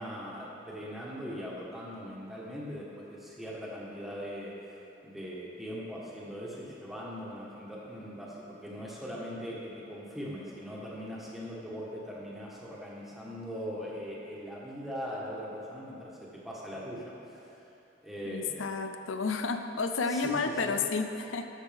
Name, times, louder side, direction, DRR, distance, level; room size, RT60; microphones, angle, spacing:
voice 1, 0.0-4.5 5.0-17.5 18.0-18.6 20.1-20.8, equal, ahead, -6 dB, 1.4 m, -40 dB
voice 2, 18.3-21.5, left 4 dB, 80° left, 7 dB, 0.6 m, -31 dB
13.5 x 6.3 x 3.5 m, 2.8 s
head